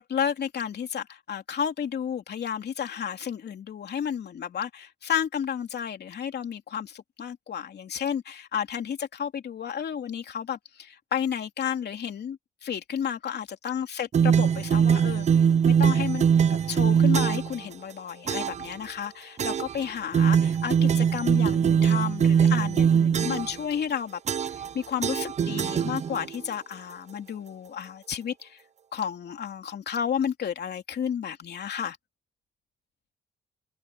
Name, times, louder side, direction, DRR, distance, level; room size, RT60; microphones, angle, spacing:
voice 1, 0.0-15.3 15.7-24.2 24.7-28.6 28.9-32.0, left 8 dB, 55° left, 3.2 m, -32 dB
sound 1, 14.1-17.6 18.3-18.7 19.4-19.8 20.1-23.6 24.3-24.7 25.0-26.4, right 7 dB, 35° right, 0.5 m, -22 dB
cardioid pair, 90°, 20 cm